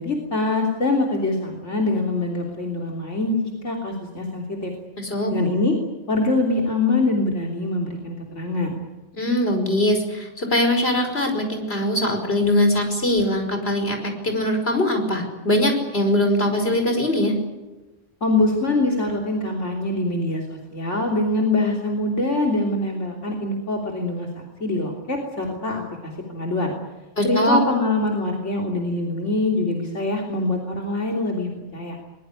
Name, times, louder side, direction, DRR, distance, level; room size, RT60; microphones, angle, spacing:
voice 1, 0.0-3.4 3.6-4.7 5.3-5.7 6.1-8.7 18.2-24.3 24.6-26.7 27.2-32.0, left 2 dB, 75° left, 0 dB, 3.6 m, -24 dB
voice 2, 5.0-5.3 9.1-17.3 27.2-27.6, left 1 dB, 55° left, 5 dB, 5.5 m, -21 dB
23.0 x 21.0 x 9.7 m, 1.1 s
omnidirectional pair, 1.2 m